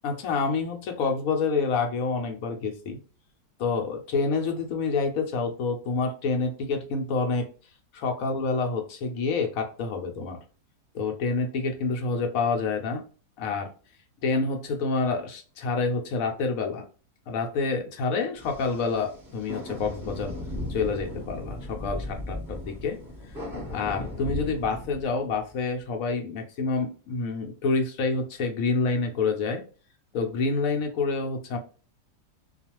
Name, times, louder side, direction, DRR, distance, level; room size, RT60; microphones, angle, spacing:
voice 1, 0.0-3.0 3.6-7.5 7.9-10.4 10.9-13.0 13.4-13.7 14.2-16.9 17.3-20.3 20.7-23.0 23.7-29.6 30.1-31.6, left 4 dB, 65° left, 3 dB, 0.9 m, -28 dB
sound 1, 18.4-25.5, left 1 dB, 15° right, 1.0 m, -37 dB
2.4 x 2.3 x 2.9 m, 0.37 s
omnidirectional pair, 1.7 m